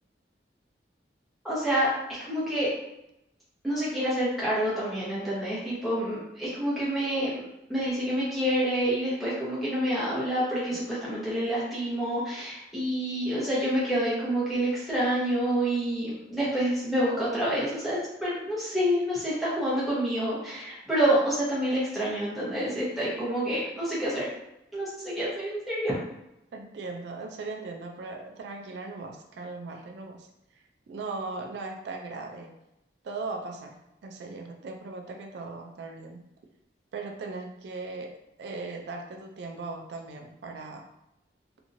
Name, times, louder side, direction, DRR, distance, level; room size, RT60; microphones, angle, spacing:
voice 1, 1.4-2.7 3.6-7.3 7.7-24.3 24.7-25.9, equal, ahead, -9 dB, 0.9 m, -28 dB
voice 2, 26.5-32.5 33.0-36.2 36.9-40.9, right 3 dB, 70° right, 3 dB, 0.3 m, -38 dB
2.9 x 2.6 x 2.6 m, 0.87 s
head